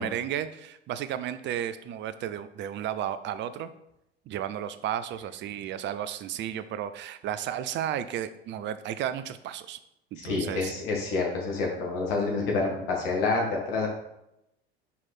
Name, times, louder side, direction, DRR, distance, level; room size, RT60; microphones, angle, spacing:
voice 1, 0.0-3.7 4.3-9.8 10.1-10.7, right 10 dB, 35° right, 12 dB, 0.6 m, -33 dB
voice 2, 10.2-13.9, left 3 dB, 60° left, -1 dB, 2.1 m, -28 dB
5.6 x 4.7 x 4.3 m, 0.84 s
figure-of-eight pair, 70°, 32 cm